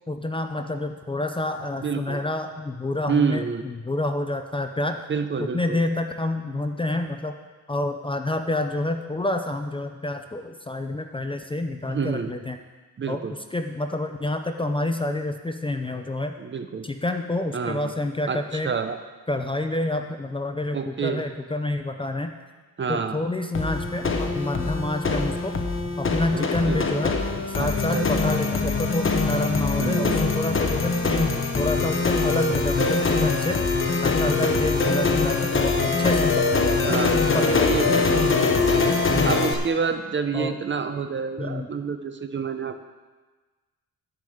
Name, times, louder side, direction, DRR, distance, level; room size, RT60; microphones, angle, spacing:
voice 1, 0.1-5.0 5.4-7.4 7.7-12.6 13.1-13.2 13.5-16.4 16.8-18.7 19.3-22.3 22.9-25.5 26.0-27.2 27.5-33.6 34.0-37.0 37.3-38.2 39.1-39.3 40.3-40.6 41.4-41.7, left 2 dB, 15° left, 6 dB, 0.6 m, -28 dB
voice 2, 1.8-2.2 3.1-3.6 5.1-5.8 11.8-12.3 13.0-13.3 16.4-16.9 17.5-17.9 18.3-19.0 20.7-21.2 22.8-23.2 26.3-27.0 27.6-28.4 29.8-30.4 36.8-37.3 37.7-38.1 38.4-38.8 39.2-42.8, right 5 dB, 30° right, 9 dB, 0.7 m, -28 dB
sound 1, 23.5-39.5, left 4 dB, 35° left, 1.2 m, -23 dB
11.0 x 5.3 x 7.8 m, 1.3 s
cardioid pair, 110°, 36 cm